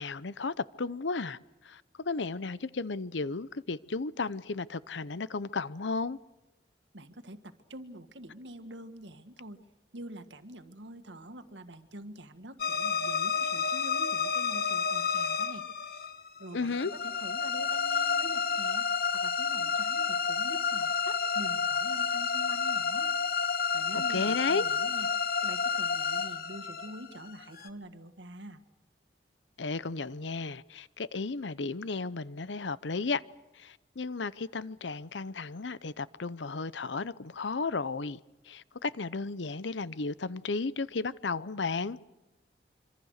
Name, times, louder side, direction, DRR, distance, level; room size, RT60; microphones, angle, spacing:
voice 1, 0.0-1.4 1.6-6.2 16.5-16.9 23.9-24.6 29.6-33.2 33.6-38.2 38.5-42.0, left 4 dB, 85° left, 0.8 m, -34 dB
voice 2, 6.9-9.6 9.9-15.6 16.4-18.9 19.1-23.1 23.7-25.1 25.4-28.6, right 1 dB, 85° right, 1.9 m, -46 dB
sound 1, 12.6-27.7, left 6 dB, 55° left, 1.3 m, -30 dB
26.0 x 26.0 x 6.6 m
head